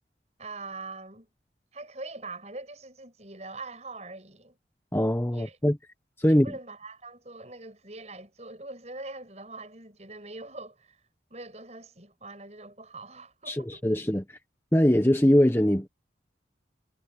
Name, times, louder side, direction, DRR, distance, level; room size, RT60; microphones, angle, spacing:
voice 1, 0.4-1.3 1.7-4.6 5.3-5.6 6.3-11.0 11.3-13.9, right 3 dB, 35° right, 7.2 m, -43 dB
voice 2, 4.9-5.8 6.2-6.5 13.5-14.4 14.7-15.9, equal, 15° left, 1.0 m, -22 dB
head